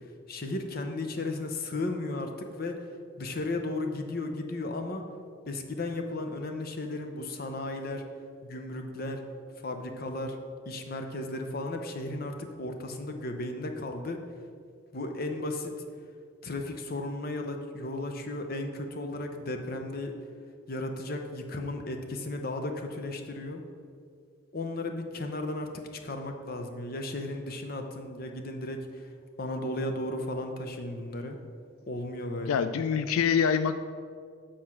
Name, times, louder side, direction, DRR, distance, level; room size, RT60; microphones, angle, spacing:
voice 1, 0.3-2.8 3.2-5.0 5.5-8.0 8.4-9.2 9.6-10.4 10.7-14.2 14.9-15.7 16.4-20.1 20.7-23.6 24.5-25.7 26.0-29.1 29.4-31.4 31.9-32.6, left 2 dB, 45° left, 5 dB, 0.7 m, -35 dB
voice 2, 32.5-33.8, left 7 dB, 85° left, 10 dB, 0.3 m, -25 dB
7.7 x 4.3 x 6.1 m, 2.1 s
head